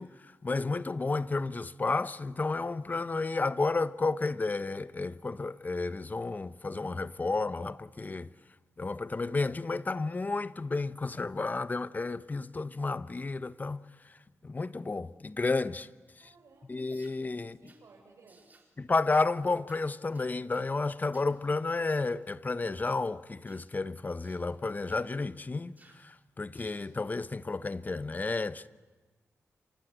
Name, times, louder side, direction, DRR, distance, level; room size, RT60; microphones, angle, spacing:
voice 1, 0.0-8.3 8.8-14.1 14.4-15.9 16.7-17.6 18.8-28.7, left 3 dB, 35° left, 0.9 m, -32 dB
voice 2, 16.2-16.9 17.4-18.7, right 3 dB, 75° right, 5.1 m, -59 dB
sound 1, 16.9-17.2 17.7-17.8 18.3-18.7 19.1-19.3 19.7-19.8 20.1-20.7 21.1-21.3 21.8-22.2 22.8-23.0 23.5-23.7 24.2-24.4 24.9-25.1 25.8-26.0 26.5-26.9, right 3 dB, 35° right, 4.3 m, -62 dB
28.5 x 25.5 x 8.1 m
cardioid pair, 70°, 5 cm